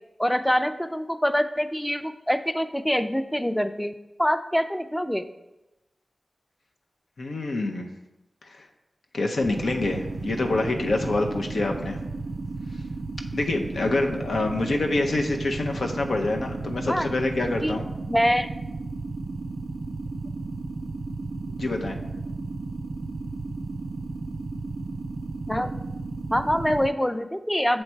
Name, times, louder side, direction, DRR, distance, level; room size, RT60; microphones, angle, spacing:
voice 1, 0.2-5.2 16.8-17.1 17.6-17.8 18.1-18.5 25.5-25.8 26.3-27.8, equal, 5° left, 11 dB, 0.4 m, -25 dB
voice 2, 7.2-7.9 8.4-8.7 9.1-12.0 13.3-17.8 21.6-22.0, left 2 dB, 85° left, 2 dB, 0.6 m, -26 dB
sound 1, 9.4-26.9, right 3 dB, 80° right, 0.3 m, -34 dB
7.0 x 3.2 x 4.5 m, 1.0 s
cardioid pair, 50°, 0 cm